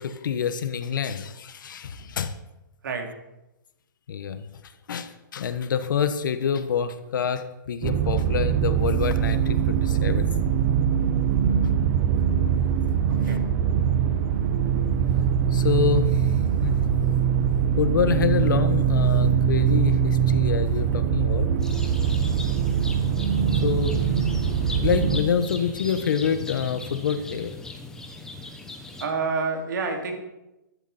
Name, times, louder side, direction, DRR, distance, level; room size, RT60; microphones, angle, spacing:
voice 1, 0.0-2.3 4.1-4.5 4.9-10.3 13.2-13.4 15.5-16.2 16.6-16.8 17.8-21.5 23.6-24.0 24.8-27.5, left 7 dB, 75° left, 10 dB, 1.4 m, -26 dB
sound 1, 7.8-25.2, right 8 dB, 35° right, 0.9 m, -22 dB
voice 2, 13.1-13.4 29.0-30.2, right 4 dB, 70° right, 3 dB, 3.3 m, -28 dB
sound 2, 21.6-29.1, left 2 dB, 5° left, 1.2 m, -38 dB
14.5 x 12.5 x 4.4 m, 0.96 s
hypercardioid pair, 160°, 11 cm